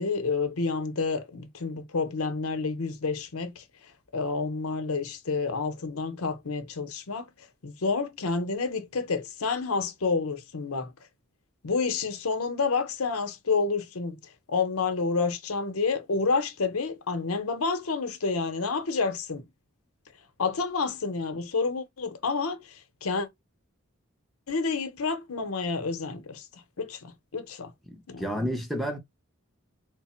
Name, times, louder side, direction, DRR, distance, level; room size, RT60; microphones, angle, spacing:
voice 1, 0.0-3.6 4.1-7.3 7.6-10.9 11.6-14.2 14.5-19.4 20.4-23.3 24.5-26.5 26.8-27.7 28.1-28.4, left 4 dB, 90° left, 0.8 m, -29 dB
voice 2, 27.9-29.0, equal, ahead, 0.6 m, -31 dB
3.3 x 2.0 x 4.2 m
head